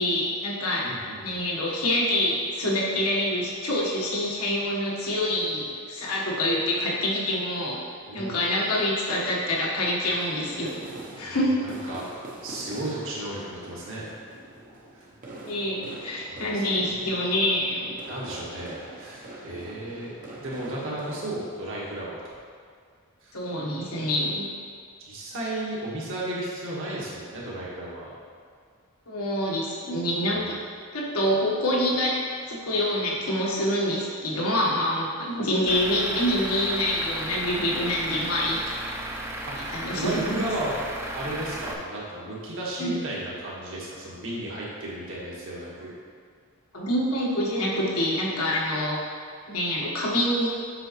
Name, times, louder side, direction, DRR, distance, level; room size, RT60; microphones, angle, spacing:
voice 1, 0.0-0.9 1.2-7.8 8.1-10.8 11.2-11.9 15.4-17.9 23.3-24.5 29.1-30.6 30.9-32.1 32.5-38.6 39.7-40.4 42.8-42.9 46.7-49.0 49.5-50.5, left 1 dB, 75° left, -5 dB, 1.5 m, -26 dB
voice 2, 0.8-1.4 8.0-8.4 11.2-11.4 11.6-12.0 12.4-14.1 14.9-15.0 16.3-16.6 18.1-20.1 20.4-22.3 23.2-23.3 25.1-28.1 39.5-40.7 41.1-45.9, right 1 dB, 65° right, -6 dB, 1.7 m, -34 dB
sound 1, 10.0-21.3, right 1 dB, 40° right, 0.9 m, -44 dB
Truck / Idling, 35.7-41.7, right 1 dB, 10° right, 0.5 m, -35 dB
7.7 x 5.8 x 3.2 m, 2.1 s
head